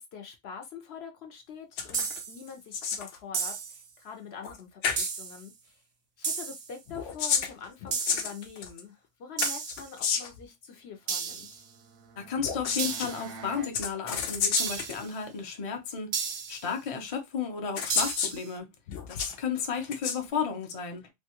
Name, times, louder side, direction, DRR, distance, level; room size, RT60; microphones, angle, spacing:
voice 1, 0.0-5.8 6.2-11.6, left 6 dB, 65° left, 0.9 m, -45 dB
sound 1, 1.8-2.2 2.5-3.2 4.4-4.6 4.8-5.1 6.9-8.8 9.4-10.4 12.4-13.1 13.7-15.0 15.9-16.0 17.1-17.2 17.8-18.4 18.9-19.4 19.8-20.2, left 6 dB, 85° left, 1.0 m, -31 dB
sound 2, 1.9-2.5 3.3-3.9 5.0-5.4 6.2-6.7 7.9-8.4 9.4-9.9 11.1-11.6 12.8-13.3 14.6-15.1 16.1-16.7 17.9-18.5, right 6 dB, 55° right, 0.5 m, -33 dB
sound 3, 11.2-13.8, right 4 dB, 90° right, 1.0 m, -48 dB
voice 2, 12.2-18.7 19.1-21.1, left 6 dB, 35° left, 0.6 m, -33 dB
3.1 x 2.3 x 2.8 m
omnidirectional pair, 1.2 m